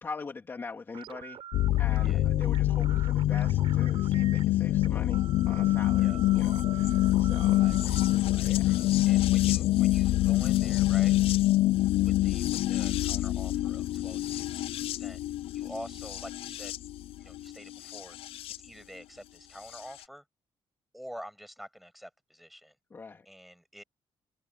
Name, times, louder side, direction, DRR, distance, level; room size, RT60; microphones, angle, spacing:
voice 1, 0.0-1.4 1.8-7.7 8.4-8.8 22.9-23.2, left 4 dB, 25° left, 2.5 m, -43 dB
sound 1, 0.9-9.9, right 10 dB, 65° right, 4.1 m, -46 dB
sound 2, 1.5-18.6 19.7-19.8, left 15 dB, 80° left, 0.4 m, -26 dB
voice 2, 7.6-8.0 8.3-11.1 12.0-15.2 15.5-16.8 17.2-18.2 18.6-20.2 20.9-22.8 23.3-23.8, equal, ahead, 7.1 m, -47 dB
open air
cardioid pair, 175°, 10 cm